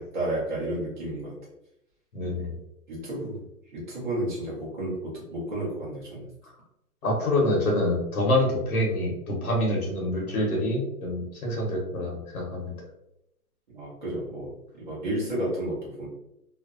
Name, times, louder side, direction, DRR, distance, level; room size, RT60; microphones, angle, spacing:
voice 1, 0.1-1.3 2.9-3.4 3.7-6.2 13.7-14.5 14.8-16.1, right 1 dB, 30° right, -6 dB, 0.8 m, -31 dB
voice 2, 2.1-2.6 7.0-12.7, left 1 dB, 65° left, -2 dB, 1.0 m, -26 dB
2.5 x 2.0 x 2.4 m, 0.84 s
hypercardioid pair, 175°, 46 cm